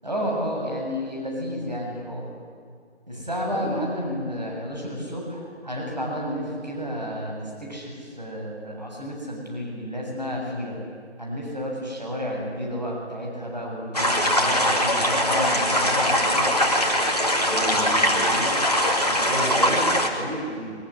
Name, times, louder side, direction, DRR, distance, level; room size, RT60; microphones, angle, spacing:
voice 1, 0.0-2.3 3.1-10.8 11.2-16.5, equal, 40° right, -1 dB, 7.6 m, -31 dB
voice 2, 3.5-3.8 17.4-18.6 19.1-20.8, right 1 dB, 80° right, -2 dB, 6.9 m, -31 dB
sound 1, 13.9-20.1, equal, 35° left, 2.6 m, -21 dB
23.5 x 22.5 x 9.9 m, 2.1 s
figure-of-eight pair, 175°, 34 cm